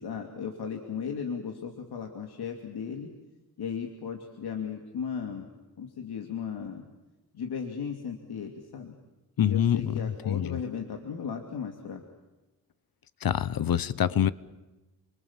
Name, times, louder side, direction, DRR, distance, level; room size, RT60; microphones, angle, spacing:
voice 1, 0.0-3.1 3.6-5.5 5.8-6.9 7.3-8.9 9.4-12.0, left 6 dB, 85° left, 3 dB, 2.8 m, -36 dB
voice 2, 9.4-10.6 13.2-14.3, left 9 dB, 65° left, 17 dB, 1.0 m, -26 dB
29.5 x 25.5 x 7.4 m, 1.1 s
wide cardioid pair, 145°, 38 cm